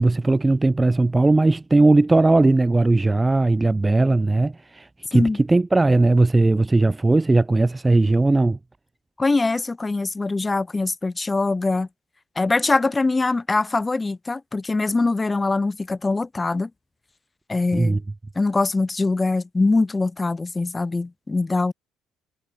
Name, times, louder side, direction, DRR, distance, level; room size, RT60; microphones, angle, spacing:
voice 1, 0.0-8.6 17.7-18.0, right 2 dB, 10° right, 0.4 m, -18 dB
voice 2, 9.2-11.9 12.4-16.7 17.5-18.0 18.3-21.7, left 3 dB, 15° left, 1.0 m, -23 dB
cardioid pair, 145°, 0 cm